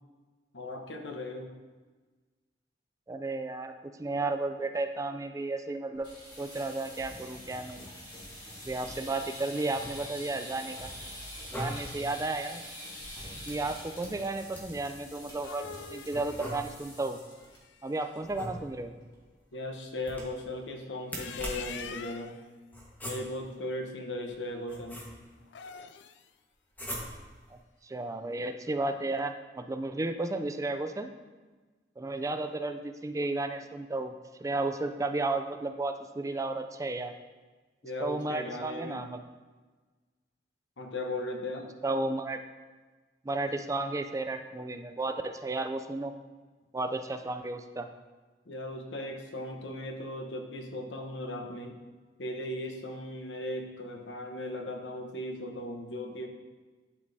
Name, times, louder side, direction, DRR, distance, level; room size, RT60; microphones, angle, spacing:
voice 1, 0.5-1.5 19.5-22.3 23.0-25.0 37.8-39.0 40.8-41.7 48.5-51.8 52.2-56.3, left 1 dB, 90° left, 3 dB, 1.0 m, -37 dB
voice 2, 3.1-6.1 6.4-7.9 8.7-10.9 11.5-12.6 13.5-17.2 17.8-18.9 27.8-31.1 32.0-34.1 34.4-37.1 38.0-39.2 41.8-42.4 43.3-46.1 46.7-47.9, right 2 dB, 20° right, 7 dB, 0.3 m, -33 dB
sound 1, 5.9-17.6 17.9-18.2 18.5-18.6 18.9-19.4, left 1 dB, 25° left, 2.1 m, -45 dB
sound 2, 9.7-10.4 11.3-12.1 13.4-14.9 16.1-17.0 18.2-19.0 20.0-20.5 21.0-21.8 22.7-23.5 24.3-25.4 26.7-27.4, equal, 10° left, 1.4 m, -41 dB
sound 3, 15.2-18.2 20.9-22.4 25.4-26.3, left 7 dB, 70° left, 0.4 m, -46 dB
11.5 x 5.1 x 2.7 m, 1.3 s
head